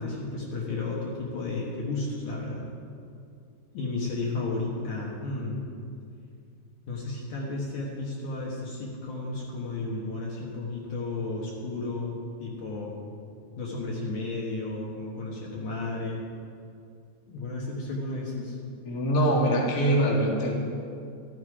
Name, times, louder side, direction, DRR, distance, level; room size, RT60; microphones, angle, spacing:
voice 1, 0.0-2.7 3.7-5.6 6.9-12.9 13.6-16.2 17.3-18.6, left 3 dB, 60° left, -3 dB, 2.5 m, -33 dB
voice 2, 18.8-20.5, right 1 dB, 30° left, -3 dB, 1.7 m, -23 dB
14.5 x 13.0 x 4.9 m, 2.4 s
omnidirectional pair, 4.7 m